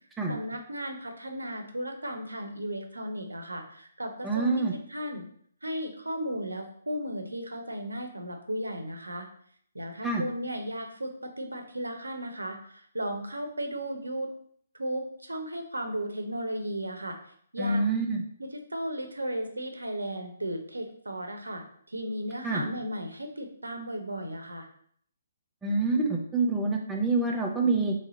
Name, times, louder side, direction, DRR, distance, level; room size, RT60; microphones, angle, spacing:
voice 1, 0.3-5.2 5.6-9.3 9.7-14.3 14.7-17.2 17.5-18.0 18.4-24.7, right 1 dB, 80° right, 4 dB, 0.7 m, -35 dB
voice 2, 4.2-4.7 10.0-10.2 17.6-18.2 22.4-22.6 25.6-27.9, right 3 dB, 5° right, -1 dB, 0.6 m, -26 dB
3.2 x 2.8 x 3.9 m, 0.62 s
figure-of-eight pair, 135°, 0 cm